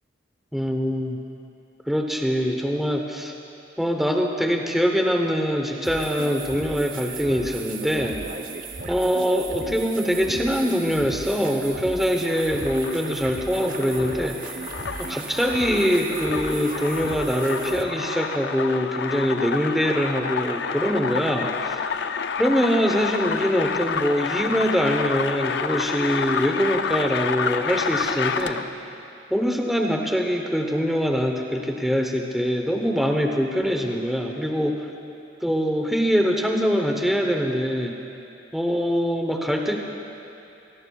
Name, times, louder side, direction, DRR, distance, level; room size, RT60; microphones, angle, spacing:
voice 1, 0.5-1.2 1.9-3.3 3.8-8.2 8.9-14.6 15.0-21.8 22.4-28.6 29.3-34.9 35.4-38.0 38.5-39.8, equal, ahead, 2 dB, 0.8 m, -23 dB
sound 1, 5.8-17.8, right 4 dB, 45° right, 0.8 m, -36 dB
sound 2, 12.1-28.8, left 6 dB, 60° left, 0.4 m, -29 dB
24.0 x 18.0 x 2.3 m, 2.9 s
head